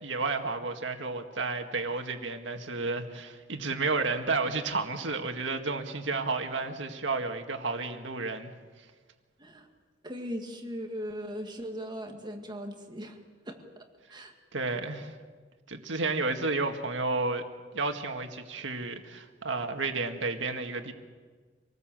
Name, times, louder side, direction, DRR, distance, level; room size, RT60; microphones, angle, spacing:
voice 1, 0.0-8.5 14.5-15.2 15.7-17.4 17.7-20.9, right 3 dB, 80° right, 5 dB, 1.9 m, -31 dB
voice 2, 10.0-13.2 13.5-13.9 14.1-14.3, equal, 25° right, 3 dB, 2.0 m, -38 dB
26.5 x 19.5 x 7.6 m, 1.5 s
head